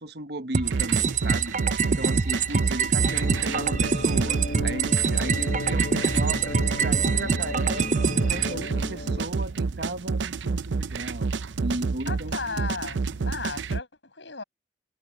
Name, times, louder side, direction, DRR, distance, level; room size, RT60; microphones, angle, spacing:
voice 1, 0.0-11.3 11.6-12.6, right 2 dB, 60° right, 1.2 m, -35 dB
sound 1, 0.5-8.5, right 5 dB, 45° right, 0.7 m, -25 dB
sound 2, 0.6-13.8, right 4 dB, 90° right, 0.6 m, -29 dB
sound 3, 3.0-9.2, left 2 dB, 60° left, 1.2 m, -34 dB
voice 2, 12.1-14.4, left 4 dB, 85° left, 7.9 m, -35 dB
head